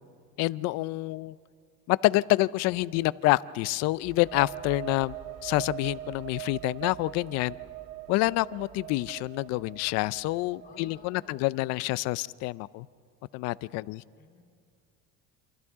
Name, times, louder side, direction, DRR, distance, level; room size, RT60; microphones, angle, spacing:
voice 1, 0.4-1.4 1.9-5.1 5.4-7.6 8.1-12.9 13.3-14.0, left 19 dB, 55° left, 19 dB, 0.5 m, -27 dB
sound 1, 3.9-11.5, right 14 dB, 55° right, 1.4 m, -42 dB
voice 2, 10.6-11.8 14.1-14.4, left 4 dB, 30° left, 3 dB, 2.8 m, -54 dB
28.0 x 27.0 x 3.6 m, 2.2 s
cardioid pair, 140°, 32 cm